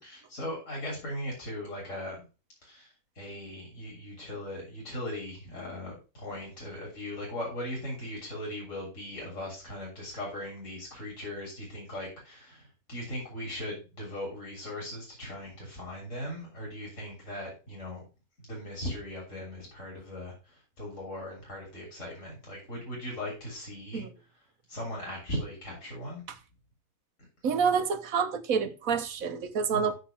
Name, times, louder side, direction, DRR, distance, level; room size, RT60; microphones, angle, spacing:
voice 1, 0.0-2.2 2.6-2.9 3.2-18.1 18.4-24.0 24.7-26.2 27.2-27.3 29.7-29.9, left 1 dB, 65° left, 3.8 m, -39 dB
voice 2, 27.4-29.9, right 6 dB, 90° right, 1.4 m, -28 dB
6.7 x 6.2 x 5.8 m
omnidirectional pair, 1.4 m